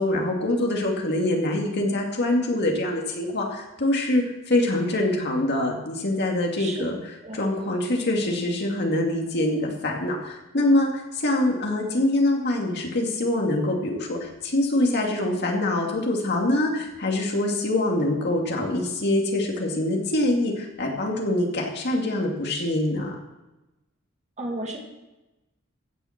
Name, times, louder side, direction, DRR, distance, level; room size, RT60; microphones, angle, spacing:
voice 1, 0.0-7.0 7.3-23.1, left 1 dB, 55° left, 0 dB, 2.4 m, -24 dB
voice 2, 24.4-24.8, right 1 dB, 35° right, 0 dB, 2.1 m, -32 dB
15.5 x 7.3 x 5.9 m, 1.0 s
head